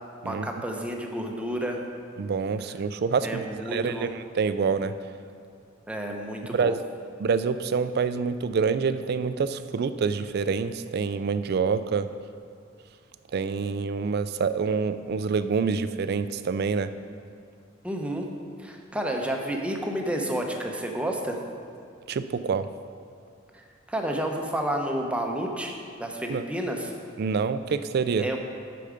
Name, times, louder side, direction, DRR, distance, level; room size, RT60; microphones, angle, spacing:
voice 1, 0.3-1.8 3.2-4.1 5.9-6.8 17.8-18.3 18.6-21.4 23.5-26.9 28.2-28.4, right 1 dB, 5° right, 1 dB, 0.8 m, -30 dB
voice 2, 2.2-3.4 3.7-4.9 6.5-6.8 7.2-12.1 13.3-16.9 22.1-22.7 26.3-26.4 27.2-28.3, right 5 dB, 55° right, 12 dB, 0.4 m, -26 dB
8.4 x 6.9 x 5.1 m, 2.3 s
head